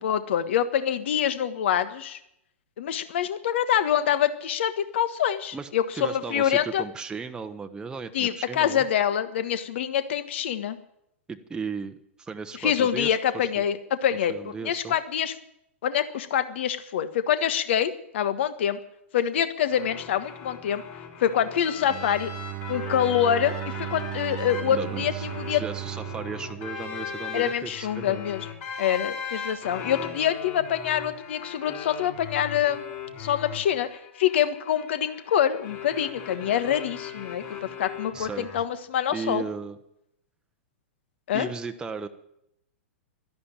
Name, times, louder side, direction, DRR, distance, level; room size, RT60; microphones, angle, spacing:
voice 1, 0.0-2.2 2.8-6.8 8.1-10.8 12.6-15.3 15.8-18.8 19.1-20.8 21.2-22.3 22.7-25.6 27.3-28.5 28.8-32.9 33.2-33.9 34.2-39.4 41.3-41.5, left 9 dB, 60° left, 11 dB, 1.4 m, -25 dB
voice 2, 5.9-8.8 11.3-13.6 14.3-14.9 24.7-28.2 38.1-38.5 39.1-39.8 41.3-42.1, right 5 dB, 10° right, 6 dB, 0.9 m, -36 dB
sound 1, 19.7-38.6, left 7 dB, 40° left, 5.5 m, -39 dB
Bowed string instrument, 21.8-27.7, right 19 dB, 35° right, 1.0 m, -36 dB
12.5 x 11.5 x 8.8 m, 0.79 s
figure-of-eight pair, 110°, 7 cm